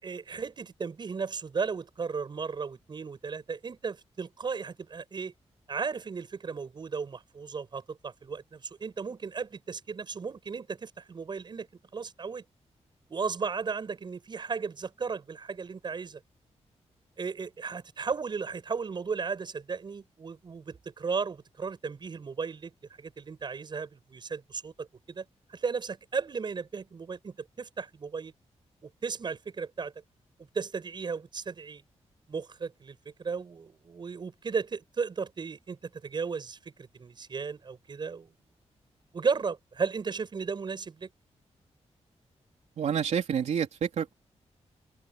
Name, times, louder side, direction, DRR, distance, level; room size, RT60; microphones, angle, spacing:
voice 1, 0.0-5.3 5.7-11.7 11.9-12.4 13.1-16.2 17.2-22.7 23.0-25.2 25.5-28.3 28.8-29.9 30.5-31.8 32.3-38.3 39.1-41.1, right 5 dB, 40° right, 7.8 m, -35 dB
voice 2, 42.8-44.2, right 8 dB, 75° right, 3.5 m, -28 dB
open air
wide cardioid pair, 165°, 12 cm